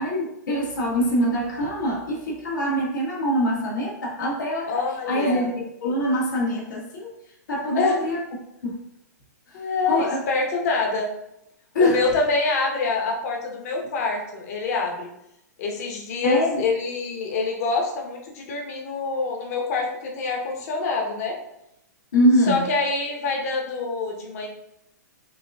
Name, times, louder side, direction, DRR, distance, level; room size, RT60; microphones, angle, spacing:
voice 1, 0.0-4.7 5.1-7.1 7.5-8.2 8.6-8.8 9.5-10.2 11.7-12.0 16.2-16.6 22.1-22.7, equal, 85° left, -4 dB, 1.5 m, -24 dB
voice 2, 4.6-5.5 7.7-8.0 9.5-11.1 11.8-15.1 15.6-21.4 22.5-24.5, left 4 dB, 55° left, 1 dB, 1.0 m, -26 dB
5.7 x 2.5 x 2.4 m, 0.83 s
hypercardioid pair, 130°, 10 cm